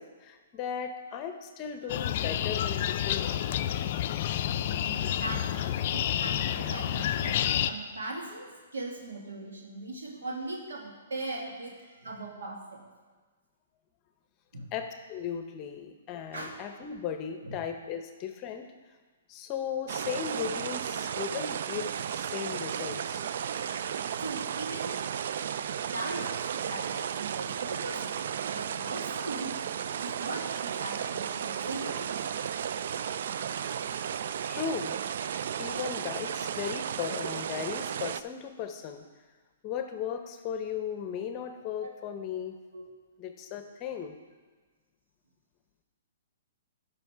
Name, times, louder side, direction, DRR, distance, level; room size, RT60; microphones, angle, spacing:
voice 1, 0.0-3.3 4.6-5.1 14.7-18.7 19.3-23.2 34.5-34.9 35.6-39.0 39.6-42.6 43.2-44.2, left 8 dB, 30° left, 7 dB, 0.8 m, -36 dB
voice 2, 1.8-2.1 4.9-5.5 5.9-12.8 14.5-14.7 16.3-16.5 17.4-17.6 24.1-24.9 25.9-28.2 28.5-29.7 30.0-32.0 41.8-41.9 42.7-42.8, right 2 dB, 85° right, 0 dB, 2.2 m, -39 dB
sound 1, 1.9-7.7, left 11 dB, 50° left, 0.4 m, -29 dB
sound 2, 19.9-38.2, right 8 dB, 65° right, 0.3 m, -34 dB
12.0 x 5.7 x 4.7 m, 1.3 s
hypercardioid pair, 145°, 0 cm